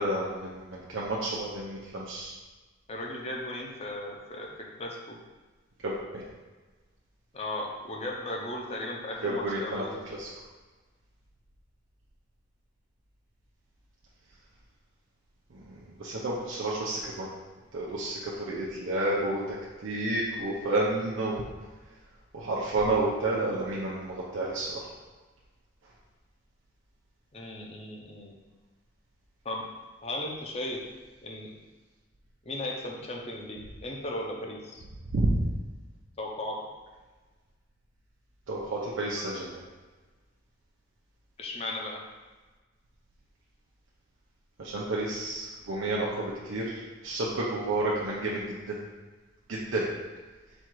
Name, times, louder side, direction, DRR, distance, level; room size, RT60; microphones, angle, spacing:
voice 1, 0.0-2.3 5.8-6.2 9.2-9.8 10.2-10.3 15.5-17.3 17.7-19.6 19.8-21.4 22.3-24.7 35.1-35.3 38.5-39.6 44.6-48.8 49.5-49.9, right 2 dB, 80° right, -5 dB, 0.6 m, -30 dB
voice 2, 2.9-4.5 4.8-5.2 7.3-10.0 27.3-28.3 29.4-29.6 30.0-30.8 31.2-31.5 32.5-34.8 36.2-36.6 41.4-42.0, left 1 dB, 30° left, -1 dB, 0.6 m, -36 dB
4.3 x 2.5 x 4.5 m, 1.3 s
head